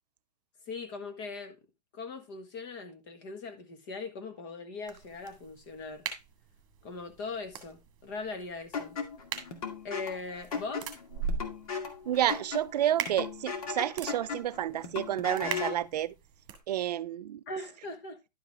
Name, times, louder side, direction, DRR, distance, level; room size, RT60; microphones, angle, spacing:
voice 1, 0.7-1.6 1.9-6.1 6.8-9.0 9.8-10.9 17.5-18.2, left 3 dB, 30° left, 1.5 m, -40 dB
sound 1, 4.8-16.6, right 6 dB, 30° right, 1.8 m, -42 dB
sound 2, 8.7-15.9, left 5 dB, 55° left, 2.1 m, -37 dB
voice 2, 12.1-16.1 16.7-17.4, right 12 dB, 70° right, 0.5 m, -30 dB
11.0 x 4.9 x 3.5 m
hypercardioid pair, 170°, 21 cm